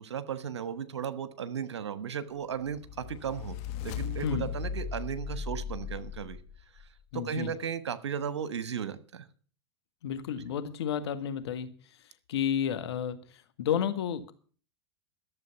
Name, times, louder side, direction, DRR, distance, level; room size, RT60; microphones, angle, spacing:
voice 1, 0.0-3.6 3.8-6.4 7.1-9.3, right 8 dB, 80° right, 14 dB, 1.3 m, -35 dB
sound 1, 2.6-6.9, left 7 dB, 50° left, 1.5 m, -37 dB
voice 2, 7.1-7.5 10.0-14.3, left 8 dB, 70° left, 10 dB, 1.5 m, -32 dB
12.5 x 7.4 x 8.3 m, 0.42 s
hypercardioid pair, 95°, 14 cm